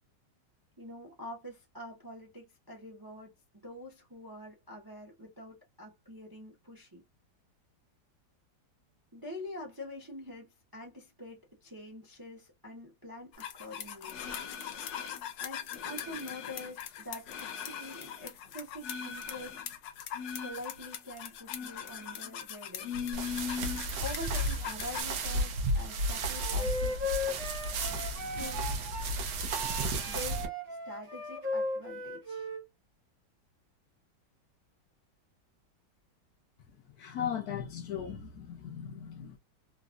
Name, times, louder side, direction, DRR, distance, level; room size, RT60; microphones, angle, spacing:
voice 1, 0.8-7.0 9.1-14.2 15.4-19.6 20.4-22.9 24.0-27.0 28.3-28.7 30.1-32.5, left 1 dB, 20° right, 0.6 m, -45 dB
sound 1, 13.4-25.0, left 8 dB, 80° left, 1.3 m, -39 dB
sound 2, 23.1-30.5, right 1 dB, 75° right, 1.4 m, -33 dB
Wind instrument woodwind instrument, 26.3-29.1 29.5-32.6, left 1 dB, 90° right, 1.9 m, -37 dB
voice 2, 37.0-39.4, left 8 dB, 65° left, 1.1 m, -37 dB
3.9 x 2.3 x 2.5 m
omnidirectional pair, 1.9 m